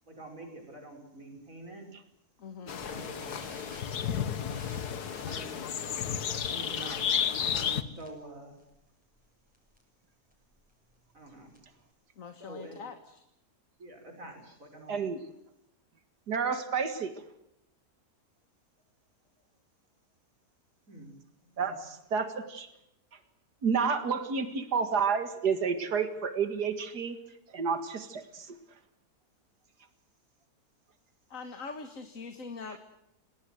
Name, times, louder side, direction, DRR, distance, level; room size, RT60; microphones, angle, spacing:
voice 1, 0.1-1.8 2.6-3.3 5.3-5.5 6.4-8.6 11.1-11.5 12.4-12.8 13.8-15.0 20.9-21.1 21.6-21.7, right 2 dB, 55° right, 4 dB, 6.4 m, -46 dB
voice 2, 2.4-2.8 12.2-13.2 31.3-32.8, left 4 dB, 55° left, 8 dB, 2.0 m, -43 dB
sound 1, 2.7-7.8, left 8 dB, 75° left, 1.8 m, -32 dB
sound 2, 2.7-8.3 8.6-8.9 9.1-9.2 9.5-9.8 10.3-11.8, equal, 5° right, 6.6 m, -52 dB
voice 3, 14.9-15.2 16.3-17.1 21.6-22.7 23.6-27.2 27.5-28.6, right 6 dB, 85° right, 9 dB, 2.4 m, -30 dB
29.0 x 19.0 x 7.9 m, 0.82 s
omnidirectional pair, 1.7 m